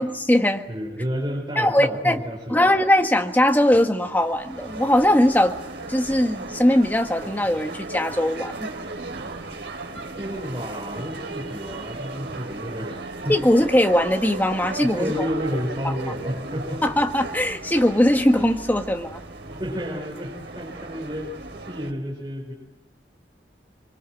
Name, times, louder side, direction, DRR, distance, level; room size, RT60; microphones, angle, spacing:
voice 1, 0.0-0.6 1.6-2.2 2.5-5.5 5.9-8.7 13.3-15.1 16.8-19.2, left 1 dB, 10° left, 4 dB, 1.6 m, -20 dB
voice 2, 0.7-2.6 10.2-13.4 14.8-16.8 19.5-22.5, equal, 25° right, -2 dB, 5.2 m, -31 dB
sound 1, 4.1-21.9, right 2 dB, 85° right, 3.2 m, -36 dB
26.0 x 24.5 x 7.7 m, 0.99 s
head